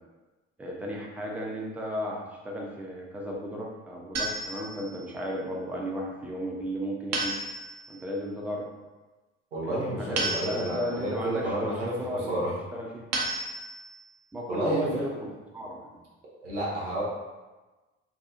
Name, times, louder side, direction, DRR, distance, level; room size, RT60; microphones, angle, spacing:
voice 1, 0.6-7.4 7.9-8.7 9.6-12.4 12.7-13.0 14.3-15.0 15.5-16.0, equal, 5° right, -2 dB, 0.5 m, -34 dB
sound 1, 4.2-5.1 7.1-8.0 10.2-11.1 13.1-14.0, right 2 dB, 45° right, 0.6 m, -32 dB
voice 2, 9.5-12.6 14.5-15.1 16.4-17.0, right 1 dB, 85° right, -6 dB, 0.7 m, -31 dB
2.7 x 2.3 x 2.6 m, 1.2 s
figure-of-eight pair, 50°, 36 cm